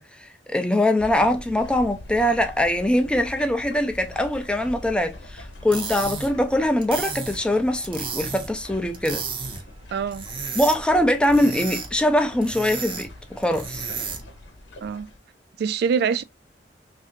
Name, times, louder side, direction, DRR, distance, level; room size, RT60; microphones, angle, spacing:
voice 1, 0.0-9.2 10.5-13.8, left 1 dB, 5° left, 0.5 m, -22 dB
sound 1, 1.0-15.2, left 1 dB, 85° left, 0.8 m, -43 dB
sound 2, 5.5-14.4, right 5 dB, 30° right, 0.7 m, -34 dB
voice 2, 9.9-10.3 14.8-15.1 15.6-16.2, right 6 dB, 60° right, 0.3 m, -24 dB
3.3 x 2.6 x 2.6 m
head